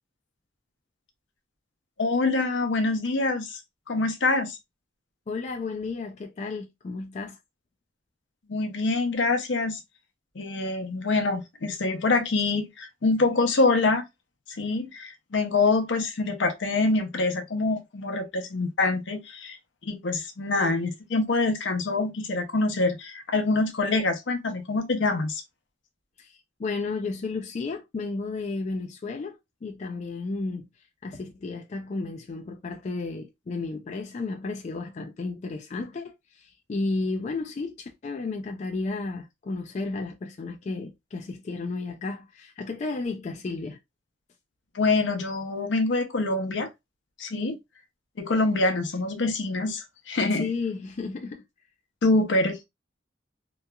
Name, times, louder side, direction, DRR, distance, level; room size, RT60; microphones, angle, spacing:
voice 1, 2.0-3.6 3.9-4.6 8.5-9.8 10.4-14.0 14.5-19.6 19.8-25.4 44.7-46.7 47.2-47.6 48.2-50.5 52.0-52.6, left 3 dB, 80° left, 0.6 m, -25 dB
voice 2, 5.3-7.4 26.2-30.7 31.0-43.8 50.4-51.4, left 3 dB, 40° left, 0.3 m, -33 dB
2.8 x 2.3 x 2.2 m
head